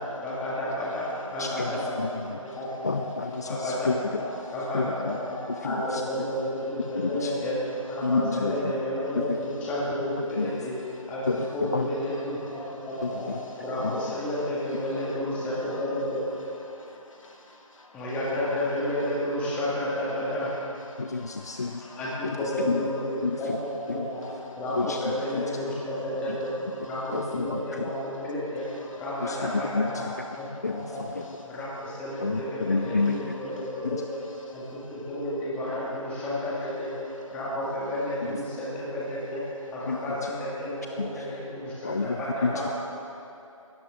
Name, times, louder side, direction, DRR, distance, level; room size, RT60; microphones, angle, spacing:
voice 1, 0.0-2.1 2.4-3.0 3.4-4.2 4.5-5.4 5.6-7.6 7.9-10.8 11.1-12.6 12.9-13.3 13.6-16.2 17.9-20.5 22.0-24.2 24.6-26.5 26.8-28.7 29.0-30.1 30.4-31.0 31.5-34.0 34.5-36.9 37.3-39.4 39.7-42.7, left 1 dB, 5° left, -7 dB, 2.0 m, -31 dB
voice 2, 1.4-1.7 2.0-2.1 2.8-4.0 4.7-5.2 5.6-6.0 7.2-7.3 8.0-8.5 9.3-9.4 10.4-10.5 11.3-11.5 11.7-11.9 13.0-13.1 13.8-13.9 21.0-21.8 22.7-22.8 23.2-23.4 24.8-25.0 27.1-27.8 29.2-29.9 30.6-30.9 32.2-33.2 39.9-40.0 41.0-41.1 41.8-42.7, left 4 dB, 30° left, 7 dB, 0.4 m, -28 dB
voice 3, 16.7-18.0 20.9-22.0 25.7-25.9 26.2-26.6 28.9-29.2 29.8-30.1 32.5-33.7 34.6-34.9, left 2 dB, 65° left, 0 dB, 2.7 m, -49 dB
20.0 x 16.0 x 3.7 m, 2.8 s
figure-of-eight pair, 160°, 18 cm